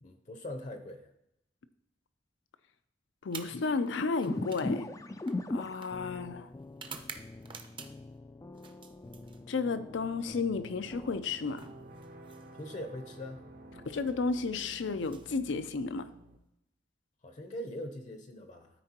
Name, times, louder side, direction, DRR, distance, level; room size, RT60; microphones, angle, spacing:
voice 1, 0.0-1.1 12.6-13.4 17.2-18.7, left 1 dB, 45° left, 0.7 m, -41 dB
voice 2, 3.2-4.9 5.5-6.5 9.5-11.7 13.9-16.1, left 4 dB, 85° left, 0.5 m, -32 dB
sound 1, 3.2-8.2 8.5-9.8 11.0-12.8 13.9-14.2 14.9-16.1, right 5 dB, 30° right, 0.6 m, -50 dB
sound 2, 4.3-11.2, left 2 dB, 20° left, 0.3 m, -41 dB
sound 3, 10.4-16.4, right 1 dB, 55° right, 0.8 m, -52 dB
13.0 x 4.4 x 2.9 m
head